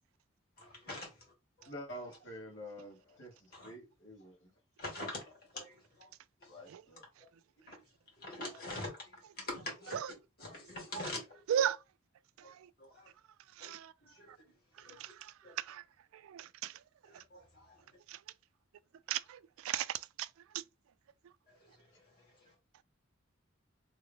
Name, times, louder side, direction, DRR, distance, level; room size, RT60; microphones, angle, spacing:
voice 1, 0.6-1.2 1.6-1.7 3.5-3.7 4.8-6.1 6.4-6.5 7.7-7.8 8.2-10.0 10.4-11.4 12.4-13.1 13.6-13.7 14.0-15.0 15.4-15.5 17.2-18.0 21.6-22.5, left 2 dB, 50° left, 2.2 m, -45 dB
voice 2, 1.7-4.5 6.5-7.0, equal, 65° left, 1.7 m, -48 dB
voice 3, 12.4-12.7 13.5-13.9 14.3-14.4 14.8-15.8 16.1-16.8 17.1-17.2 18.1-18.2 19.1-20.6, right 10 dB, 80° right, 0.3 m, -37 dB
3.4 x 2.4 x 3.6 m
head